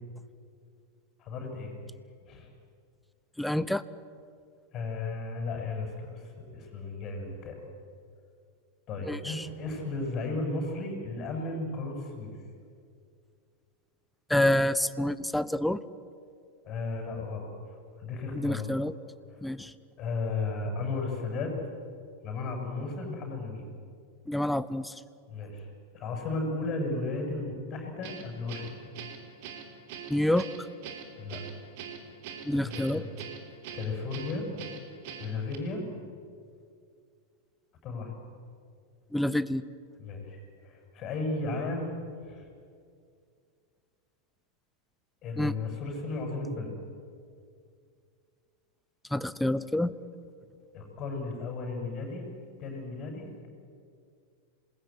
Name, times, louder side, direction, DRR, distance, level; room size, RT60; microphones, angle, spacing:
voice 1, 1.2-1.8 2.3-2.5 4.7-7.6 8.9-12.3 16.6-17.5 18.0-18.7 20.0-21.5 22.2-23.7 25.3-25.7 25.9-28.9 31.2-31.4 32.5-33.1 33.7-34.5 35.2-35.9 37.8-38.1 40.0-40.4 40.6-42.0 42.3-42.4 45.2-46.7 50.7-52.3 52.6-53.5, left 3 dB, 35° left, 3 dB, 7.6 m, -34 dB
voice 2, 3.4-3.8 9.0-9.5 14.3-15.8 18.4-19.0 19.4-19.7 24.3-24.9 30.1-30.5 32.4-33.0 39.1-39.6 45.4-45.5 49.1-49.9, left 1 dB, 5° left, 16 dB, 0.9 m, -27 dB
Guitar, 28.0-35.6, right 7 dB, 50° right, 3.5 m, -43 dB
27.0 x 20.5 x 9.7 m, 2.3 s
figure-of-eight pair, 90°, 0 cm